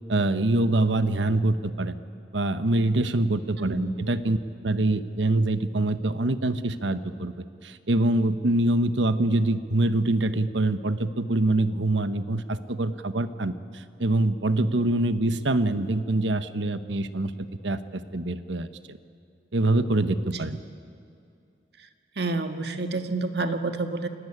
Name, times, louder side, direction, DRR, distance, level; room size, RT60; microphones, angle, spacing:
voice 1, 0.1-2.0 2.3-4.4 4.6-7.3 7.6-17.3 17.6-19.0 19.5-20.6, right 2 dB, 90° right, 11 dB, 1.2 m, -25 dB
voice 2, 3.6-3.9 21.8-21.9 22.2-24.1, right 3 dB, 65° right, 7 dB, 1.7 m, -28 dB
28.5 x 17.5 x 9.9 m, 2.4 s
head